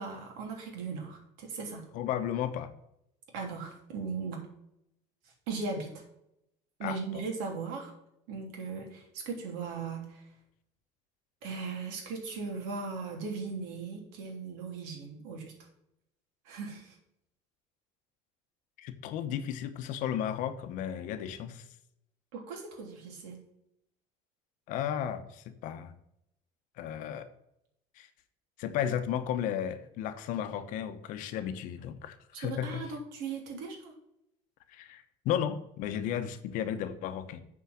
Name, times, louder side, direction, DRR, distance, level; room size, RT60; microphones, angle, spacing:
voice 1, 0.0-1.8 3.3-4.4 5.2-5.9 6.8-7.9 8.3-10.3 11.4-15.7 16.4-17.0 22.3-23.4 32.3-33.9, right 4 dB, 75° right, 1 dB, 3.2 m, -38 dB
voice 2, 1.9-2.7 6.8-7.0 18.8-21.6 24.7-25.9 26.8-27.3 28.0-28.1 28.6-32.7 34.7-37.4, left 10 dB, 60° left, 10 dB, 1.0 m, -34 dB
8.4 x 4.8 x 6.4 m, 0.80 s
cardioid pair, 150°, 15 cm